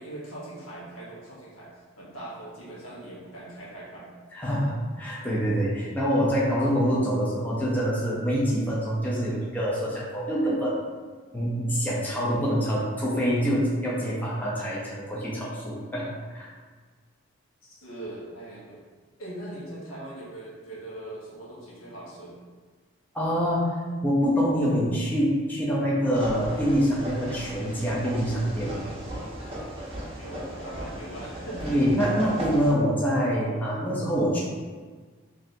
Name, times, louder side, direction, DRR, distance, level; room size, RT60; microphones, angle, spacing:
voice 1, 0.0-1.7 2.0-4.1 17.6-18.8 19.2-22.4 30.1-31.7, right 1 dB, 80° left, -6 dB, 1.0 m, -41 dB
voice 2, 4.3-10.8 11.3-16.1 16.3-16.5 23.1-23.6 24.0-28.8 31.6-34.4, equal, 10° left, -7 dB, 0.5 m, -25 dB
sound 1, 26.1-32.7, right 1 dB, 30° right, 0.6 m, -36 dB
3.2 x 2.6 x 2.6 m, 1.5 s
head